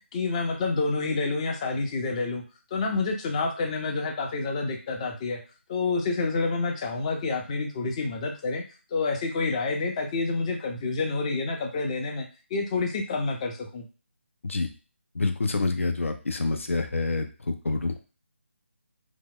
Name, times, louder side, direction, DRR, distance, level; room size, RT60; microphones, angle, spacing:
voice 1, 0.1-2.4 2.7-5.4 5.7-8.6 8.9-13.9, left 3 dB, 25° left, 2 dB, 0.5 m, -28 dB
voice 2, 15.1-18.0, left 3 dB, 75° left, 6 dB, 0.5 m, -27 dB
2.8 x 2.1 x 3.7 m, 0.34 s
figure-of-eight pair, 155°, 7 cm